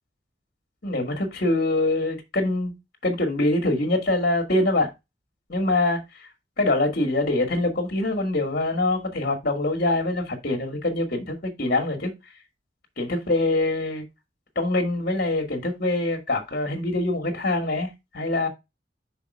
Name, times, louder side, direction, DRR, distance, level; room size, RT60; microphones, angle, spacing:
voice 1, 0.8-2.7 3.0-4.9 5.5-6.3 6.6-12.1 13.0-14.0 14.5-18.5, left 2 dB, 55° left, 1.5 m, -24 dB
5.6 x 4.0 x 5.3 m
head